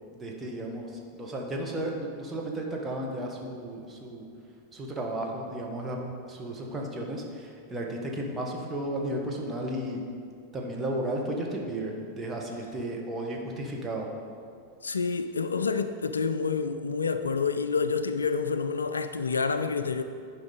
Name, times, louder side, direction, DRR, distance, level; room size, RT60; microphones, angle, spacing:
voice 1, 0.1-4.2 4.7-6.0 6.3-10.0 10.5-14.1, right 1 dB, 15° right, -1 dB, 1.4 m, -34 dB
voice 2, 14.8-20.0, left 5 dB, 75° left, 10 dB, 0.3 m, -28 dB
10.5 x 5.1 x 5.1 m, 2.3 s
figure-of-eight pair, 90°, 0 cm